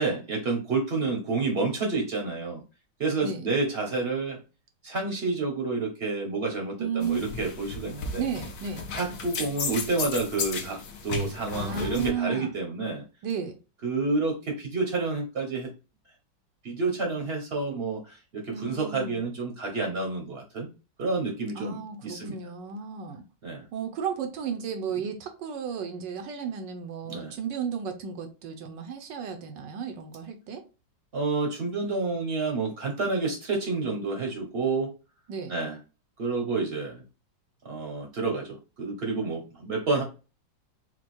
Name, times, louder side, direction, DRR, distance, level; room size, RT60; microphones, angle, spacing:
voice 1, 0.0-2.6 3.0-4.4 4.8-8.2 8.9-13.0 13.8-15.7 16.6-20.7 21.0-22.3 23.4-23.6 27.1-27.3 31.1-34.9 35.5-35.8 36.2-37.0 37.6-40.0, right 3 dB, 45° right, 0.9 m, -29 dB
voice 2, 6.8-7.2 7.9-8.8 11.5-12.5 13.2-13.6 18.5-19.2 21.5-23.2 23.7-30.6 35.3-35.6, right 6 dB, 75° right, 1.3 m, -33 dB
sound 1, 7.0-12.1, left 4 dB, 60° left, 1.3 m, -34 dB
4.5 x 2.2 x 4.2 m
omnidirectional pair, 2.0 m